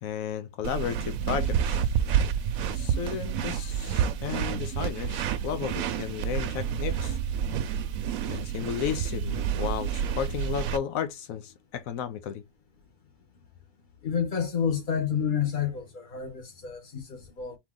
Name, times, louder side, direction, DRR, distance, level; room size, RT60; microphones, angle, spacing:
voice 1, 0.0-1.9 2.7-7.2 8.3-12.4, left 8 dB, 85° left, 1.1 m, -33 dB
sound 1, 0.6-10.8, right 8 dB, 80° right, 1.0 m, -29 dB
voice 2, 14.0-17.6, left 7 dB, 40° left, 1.3 m, -29 dB
4.2 x 3.0 x 3.7 m
omnidirectional pair, 1.4 m